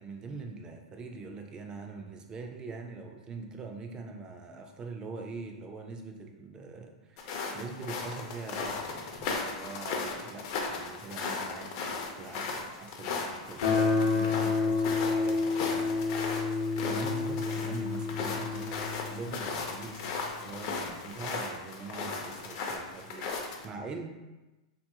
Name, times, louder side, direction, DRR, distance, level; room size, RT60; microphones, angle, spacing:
voice 1, 0.0-16.4 16.9-20.0 20.4-24.2, right 4 dB, 25° right, 3 dB, 0.4 m, -43 dB
sound 1, 7.2-23.7, left 4 dB, 50° left, 0.5 m, -37 dB
Guitar, 13.6-20.3, left 4 dB, 85° left, 0.7 m, -30 dB
2.8 x 2.4 x 2.7 m, 1.1 s
hypercardioid pair, 120°, 3 cm